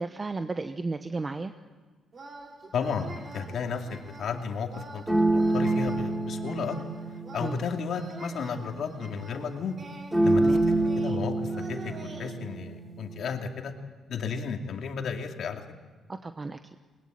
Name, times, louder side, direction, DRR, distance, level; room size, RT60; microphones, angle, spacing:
voice 1, 0.0-1.5 7.4-7.6 10.4-10.7 16.1-16.8, right 3 dB, 30° right, 8 dB, 1.0 m, -33 dB
sound 1, 2.1-12.3, right 3 dB, 45° right, 3.4 m, -45 dB
voice 2, 2.7-5.0 5.3-6.8 7.3-9.8 10.2-10.6 11.0-13.7 14.1-15.6, left 6 dB, 65° left, 4 dB, 2.5 m, -33 dB
sound 2, 3.0-4.0 5.1-9.1 10.1-13.3, right 2 dB, 10° right, 2.7 m, -28 dB
21.0 x 20.5 x 8.9 m, 1.4 s
cardioid pair, 90°, 0 cm